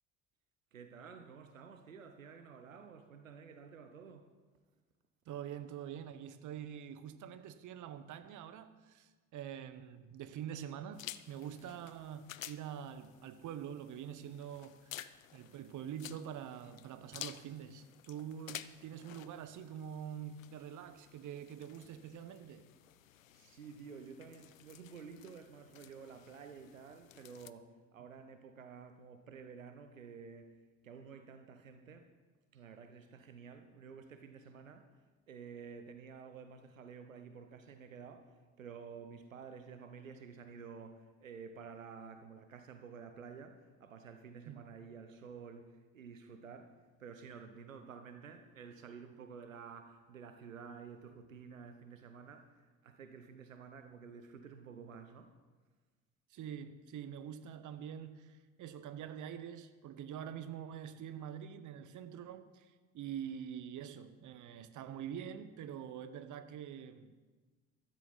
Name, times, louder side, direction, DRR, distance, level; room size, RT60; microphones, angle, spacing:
voice 1, 0.7-4.3 23.3-30.5 30.8-32.1 32.5-34.9 35.3-46.7 47.0-55.3, right 6 dB, 90° right, 7 dB, 0.8 m, -51 dB
voice 2, 5.3-15.0 15.3-22.6 44.5-44.7 56.3-67.2, right 9 dB, 50° right, 11 dB, 1.1 m, -45 dB
sound 1, 10.9-27.5, left 12 dB, 90° left, 0.5 m, -53 dB
15.0 x 12.5 x 4.1 m, 1.4 s
figure-of-eight pair, 55°, 38 cm